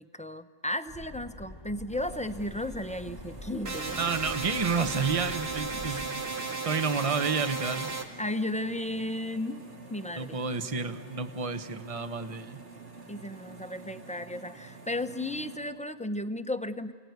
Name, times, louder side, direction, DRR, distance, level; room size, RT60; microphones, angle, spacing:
voice 1, 0.0-4.1 5.7-6.2 8.2-9.6 9.9-10.4 13.1-16.9, left 1 dB, 10° left, 10 dB, 0.7 m, -34 dB
sound 1, 0.9-6.1, left 2 dB, 25° left, 1.1 m, -45 dB
sound 2, 1.9-15.6, right 4 dB, 70° right, 2.3 m, -48 dB
sound 3, 3.7-8.1, right 4 dB, 85° right, 2.1 m, -34 dB
voice 2, 4.0-6.3 6.6-7.9 10.2-12.6, right 5 dB, 35° right, 10 dB, 1.0 m, -30 dB
29.0 x 18.5 x 9.5 m, 2.2 s
omnidirectional pair, 1.1 m